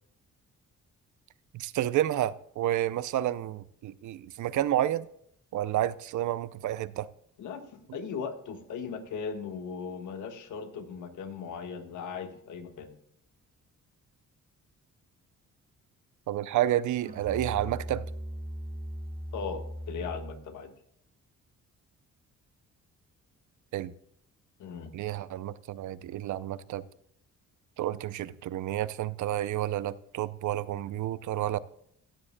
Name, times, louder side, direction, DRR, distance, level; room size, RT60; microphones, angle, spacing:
voice 1, 1.5-5.1 5.5-7.1 16.3-18.1 23.7-23.9 24.9-26.8 27.8-31.6, right 13 dB, 70° right, 0.6 m, -30 dB
voice 2, 7.4-12.9 19.3-20.7 24.6-24.9, left 6 dB, 75° left, 1.5 m, -38 dB
Musical instrument, 17.0-20.5, equal, 30° right, 1.7 m, -39 dB
14.5 x 9.7 x 2.2 m
cardioid pair, 135°, 31 cm